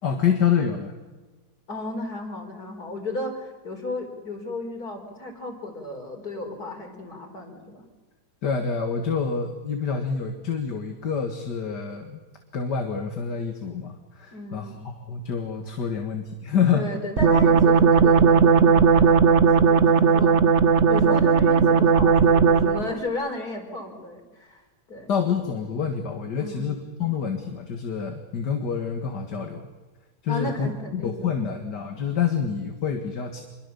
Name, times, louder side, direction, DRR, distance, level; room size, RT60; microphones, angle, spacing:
voice 1, 0.0-0.9 8.4-12.2 12.5-16.9 25.1-29.7 30.2-33.4, left 6 dB, 85° left, 4 dB, 2.5 m, -27 dB
voice 2, 1.7-7.9 14.3-14.8 16.7-25.1 26.3-26.7 30.3-31.6, left 2 dB, 65° left, 4 dB, 4.9 m, -34 dB
sound 1, 17.2-22.9, right 6 dB, 45° right, 1.3 m, -17 dB
26.5 x 23.0 x 7.1 m, 1.2 s
omnidirectional pair, 1.8 m